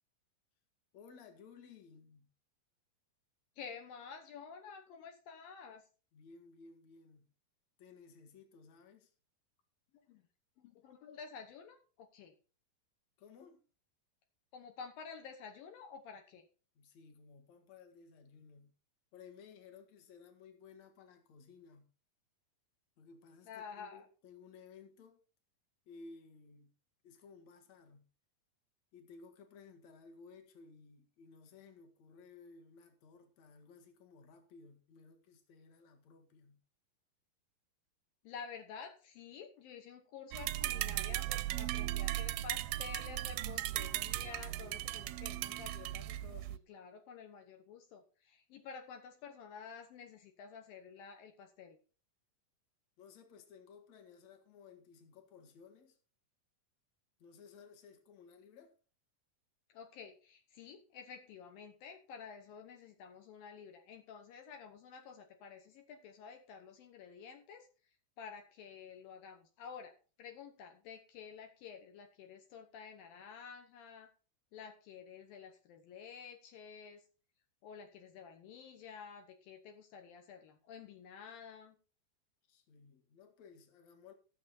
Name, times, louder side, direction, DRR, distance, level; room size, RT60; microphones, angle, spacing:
voice 1, 0.9-2.3 6.1-7.3 7.8-9.1 13.2-13.6 16.7-18.7 19.1-21.9 23.0-25.2 25.9-26.7 27.0-28.1 28.9-36.6 53.0-56.0 57.2-58.8 82.5-84.1, left 5 dB, 55° left, 2.7 m, -57 dB
voice 2, 3.6-5.8 10.1-10.2 10.6-12.3 14.5-16.4 23.5-24.0 38.2-51.8 59.7-67.7 68.2-69.9 70.2-74.1 74.5-77.0 77.6-81.8, left 6 dB, 75° left, 2.8 m, -51 dB
sound 1, 40.3-46.6, right 15 dB, 85° right, 2.5 m, -37 dB
15.5 x 6.8 x 4.2 m
omnidirectional pair, 4.2 m